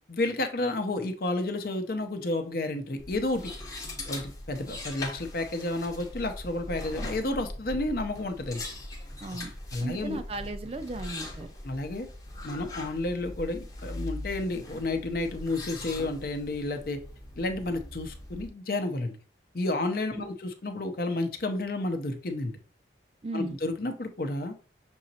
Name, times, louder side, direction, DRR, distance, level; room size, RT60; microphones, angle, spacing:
voice 1, 0.1-3.5 4.1-8.6 9.7-10.2 11.6-12.1 12.4-17.0 17.4-19.2 19.5-22.6 23.3-24.5, left 2 dB, 55° left, 6 dB, 0.6 m, -31 dB
sound 1, 3.0-18.5, left 1 dB, 20° left, 0.8 m, -41 dB
voice 2, 9.2-9.5 9.8-11.5 20.1-20.3 23.2-23.6, right 2 dB, 35° right, 9 dB, 0.4 m, -36 dB
6.2 x 2.9 x 2.8 m, 0.37 s
head